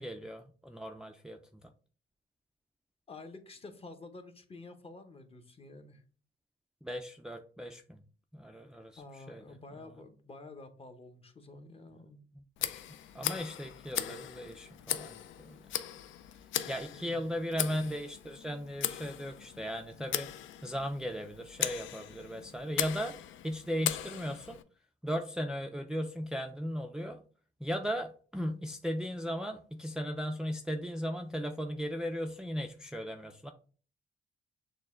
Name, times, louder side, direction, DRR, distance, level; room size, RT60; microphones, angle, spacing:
voice 1, 0.0-1.7 6.8-8.0 8.3-9.4 12.4-12.8 13.1-15.6 16.7-23.2 23.4-24.6 25.0-27.2 27.6-33.5, equal, 5° right, 5 dB, 0.4 m, -37 dB
voice 2, 3.1-6.0 9.0-12.2 16.9-17.3, left 3 dB, 30° left, 7 dB, 0.8 m, -50 dB
Tick, 12.6-24.6, left 11 dB, 75° left, 0.4 m, -38 dB
6.4 x 2.2 x 3.6 m, 0.41 s
cardioid pair, 90°, 20 cm